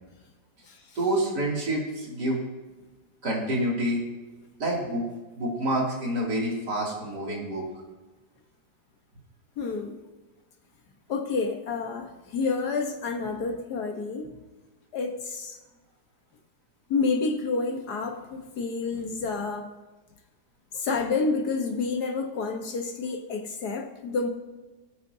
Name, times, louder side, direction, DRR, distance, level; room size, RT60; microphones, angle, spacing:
voice 1, 1.0-2.4 3.2-4.0 4.6-5.1 5.4-7.6, right 1 dB, 60° right, -4 dB, 3.4 m, -27 dB
voice 2, 9.6-10.0 11.1-14.4 14.9-15.6 16.9-19.7 20.7-24.3, left 4 dB, 60° left, 3 dB, 1.7 m, -29 dB
21.5 x 8.5 x 2.8 m, 1.2 s
omnidirectional pair, 2.0 m